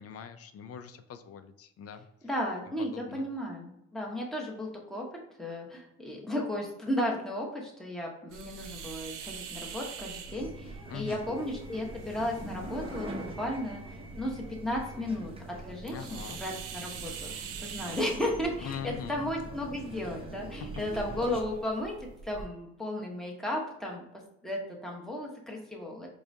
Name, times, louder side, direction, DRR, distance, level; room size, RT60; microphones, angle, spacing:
voice 1, 0.0-2.3 2.8-3.3 10.9-11.3 15.9-16.4 18.6-19.2 20.6-20.8, left 8 dB, 50° left, 10 dB, 0.4 m, -42 dB
voice 2, 2.2-5.0 5.4-21.9 22.2-26.1, left 1 dB, ahead, -2 dB, 1.0 m, -34 dB
sound 1, 8.3-22.5, right 5 dB, 85° right, 0.6 m, -44 dB
sound 2, 10.2-21.4, right 1 dB, 20° right, 0.7 m, -44 dB
4.7 x 2.3 x 2.7 m, 0.77 s
cardioid pair, 90°, 30 cm